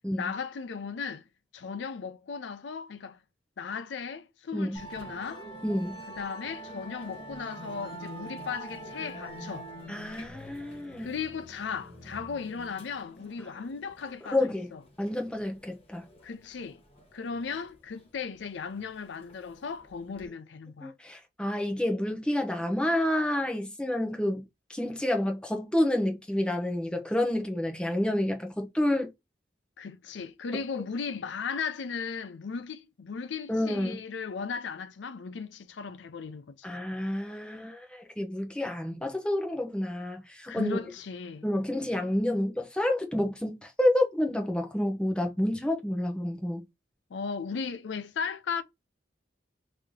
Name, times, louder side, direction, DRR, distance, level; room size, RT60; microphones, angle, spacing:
voice 1, 0.2-1.2 1.5-3.2 3.6-5.5 6.1-9.7 11.0-14.8 16.2-16.8 17.1-20.9 29.8-36.7 40.5-41.5 47.1-48.6, left 5 dB, 80° left, 0.4 m, -36 dB
Musical instrument, 4.7-20.2, right 1 dB, 30° left, 1.1 m, -46 dB
voice 2, 5.6-6.0 9.9-11.1 14.3-14.7 15.0-16.0 20.8-24.4 24.7-29.1 30.5-30.6 33.5-34.0 36.6-40.9 41.4-46.6, left 1 dB, 5° left, 0.7 m, -29 dB
3.2 x 2.8 x 3.5 m
head